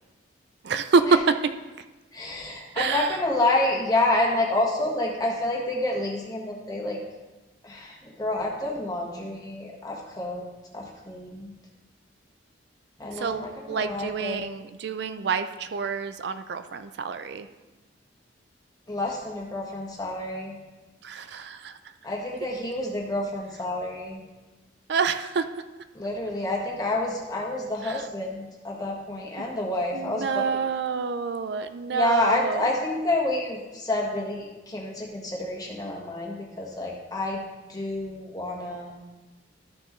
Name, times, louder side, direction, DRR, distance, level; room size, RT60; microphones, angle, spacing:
voice 1, 0.6-1.5 2.7-3.2 13.1-17.5 21.0-21.8 24.9-25.6 27.8-28.1 29.4-29.6 29.9-32.7, right 5 dB, 60° right, 10 dB, 0.4 m, -27 dB
voice 2, 2.1-7.0 7.6-10.4 10.7-11.5 13.0-14.4 18.9-20.5 22.0-24.2 25.9-30.6 31.9-37.4 37.7-38.9, left 2 dB, 20° left, -2 dB, 1.4 m, -28 dB
13.0 x 6.1 x 3.1 m, 1.2 s
head